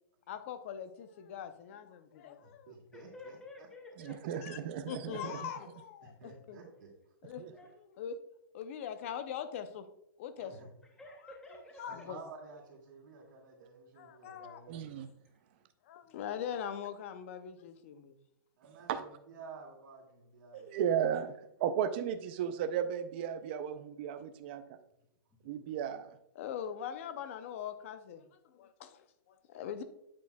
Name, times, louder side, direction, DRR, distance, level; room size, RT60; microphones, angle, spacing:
voice 1, 0.3-2.7 4.4-4.6 4.9-6.6 7.2-7.5 7.8-8.2 8.5-9.9 10.2-10.5 11.8-12.2 14.0-14.6 15.8-18.2 26.4-29.8, left 8 dB, 35° left, 10 dB, 0.5 m, -42 dB
voice 2, 2.4-3.7 6.0-6.9 10.4-10.7 11.9-15.0 18.6-20.7, right 4 dB, 55° right, -1 dB, 2.2 m, -52 dB
voice 3, 2.9-4.4 7.5-7.7 10.8-11.8 25.3-25.4, left 2 dB, 5° left, 0 dB, 0.7 m, -51 dB
voice 4, 4.0-5.4 7.4-7.5 14.7-15.1 18.6-19.0 20.5-21.3 21.6-24.8 25.4-26.1, right 9 dB, 30° right, 10 dB, 0.3 m, -35 dB
8.4 x 6.1 x 2.2 m, 0.82 s
hypercardioid pair, 170°, 12 cm